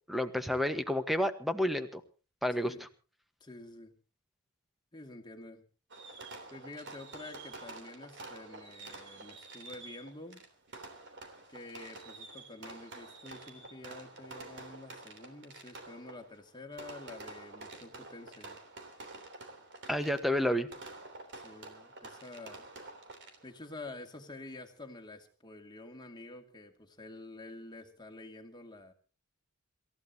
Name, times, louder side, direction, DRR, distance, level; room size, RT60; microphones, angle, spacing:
voice 1, 0.1-2.0 2.4-2.9 19.9-20.7, left 1 dB, ahead, 9 dB, 1.3 m, -30 dB
voice 2, 2.5-2.8 3.4-4.0 4.9-5.6 6.5-10.4 11.5-18.6 21.4-22.7 23.4-28.9, left 2 dB, 20° left, 4 dB, 2.3 m, -48 dB
Fireworks, 5.9-23.7, right 3 dB, 55° right, 3.3 m, -49 dB
27.5 x 14.5 x 2.9 m, 0.35 s
head